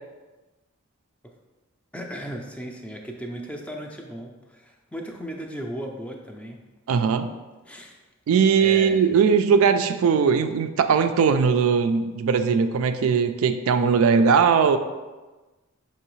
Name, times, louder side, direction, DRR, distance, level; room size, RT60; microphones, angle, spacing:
voice 1, 1.9-6.6 7.7-8.0 8.6-9.1, equal, 5° left, 2 dB, 0.4 m, -36 dB
voice 2, 6.9-7.3 8.3-14.8, right 6 dB, 75° right, 8 dB, 0.3 m, -19 dB
5.5 x 3.0 x 3.0 m, 1.2 s
head